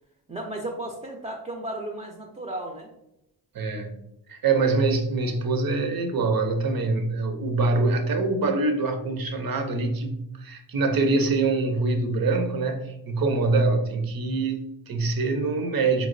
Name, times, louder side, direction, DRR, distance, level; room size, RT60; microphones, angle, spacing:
voice 1, 0.3-2.9, right 1 dB, 15° right, 1 dB, 0.4 m, -34 dB
voice 2, 3.5-4.0 4.3-16.1, right 3 dB, 55° right, 5 dB, 0.6 m, -24 dB
4.0 x 2.0 x 2.5 m, 0.83 s
cardioid pair, 60°, 43 cm